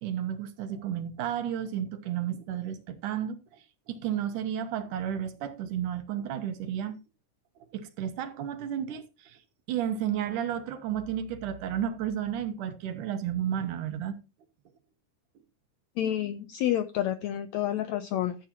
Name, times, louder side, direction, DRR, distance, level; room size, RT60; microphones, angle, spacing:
voice 1, 0.0-7.0 7.7-9.4 9.7-14.1, right 9 dB, 70° right, 2.5 m, -32 dB
voice 2, 16.0-18.4, left 11 dB, 85° left, 1.6 m, -29 dB
14.0 x 8.5 x 2.9 m
omnidirectional pair, 3.9 m